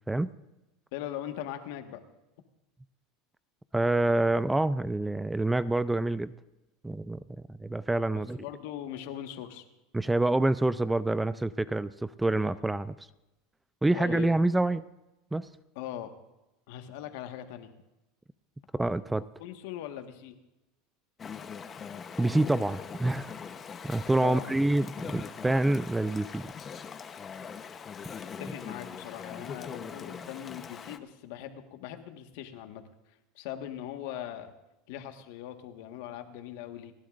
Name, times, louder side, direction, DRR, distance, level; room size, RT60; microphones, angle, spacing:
voice 1, 0.9-2.0 8.1-9.6 13.9-14.3 15.7-16.1 16.7-17.8 19.4-20.3 24.2-24.6 28.4-32.8 33.3-34.5 34.9-36.9, left 11 dB, 70° left, 6 dB, 1.5 m, -40 dB
voice 2, 3.7-6.3 6.8-7.2 7.6-8.4 9.9-12.9 13.8-14.8 15.3-15.5 18.7-19.2 22.2-23.3 23.8-26.5, right 2 dB, 5° right, 16 dB, 0.4 m, -27 dB
Chatter / Stream, 21.2-31.0, left 6 dB, 25° left, 0.9 m, -42 dB
29.0 x 11.5 x 2.5 m, 0.97 s
supercardioid pair, 135°, 0 cm